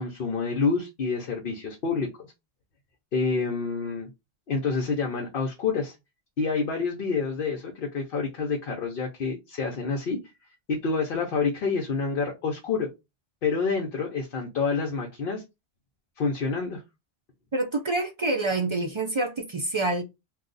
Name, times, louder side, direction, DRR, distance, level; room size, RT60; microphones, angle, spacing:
voice 1, 0.0-2.1 3.1-4.1 4.5-5.9 6.4-10.2 10.7-12.9 13.4-15.4 16.2-16.8, left 4 dB, 60° left, 0.9 m, -28 dB
voice 2, 17.5-20.0, right 2 dB, 50° right, 0.3 m, -27 dB
2.7 x 2.4 x 3.8 m
omnidirectional pair, 1.1 m